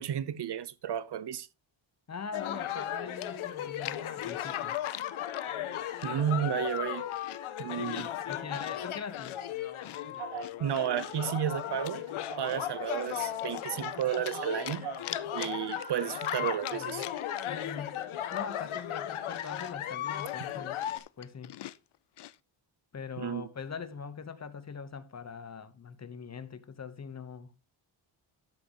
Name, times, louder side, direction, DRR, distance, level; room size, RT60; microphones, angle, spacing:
voice 1, 0.0-1.5 6.0-7.0 7.6-8.1 10.6-12.0 12.4-14.9 15.3-17.1 23.2-23.5, right 9 dB, 55° right, 0.8 m, -32 dB
voice 2, 2.1-4.8 7.8-9.4 16.0-17.0 17.4-18.0 18.3-20.8 21.2-21.6 22.9-27.5, left 6 dB, 35° left, 1.0 m, -42 dB
sound 1, 2.3-21.0, left 11 dB, 85° left, 1.3 m, -36 dB
Chewing mastication, 3.2-5.5 6.0-6.4 6.7-8.8 9.1-11.3 11.7-12.6 13.0-14.4 14.7-17.7 17.9-18.0 18.3-22.4, left 13 dB, 60° left, 0.6 m, -45 dB
Telephone, 10.2-10.5 11.0-12.7 12.9-15.1 15.7-16.4, right 6 dB, 90° right, 3.4 m, -44 dB
12.0 x 7.8 x 2.9 m
cardioid pair, 115°, 48 cm